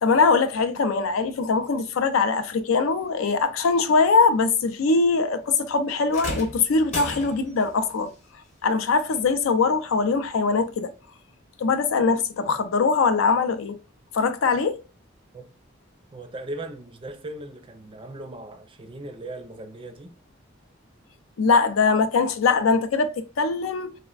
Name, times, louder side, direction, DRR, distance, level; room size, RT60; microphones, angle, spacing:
voice 1, 0.0-8.1 8.6-10.9 11.6-13.8 14.1-14.8 21.4-24.0, left 4 dB, 90° left, 0.4 m, -22 dB
sound 1, 6.1-7.7 9.1-9.3 10.1-10.2, left 1 dB, 35° left, 0.9 m, -34 dB
voice 2, 16.1-20.1, right 2 dB, 25° right, 0.4 m, -38 dB
3.3 x 2.1 x 2.3 m
head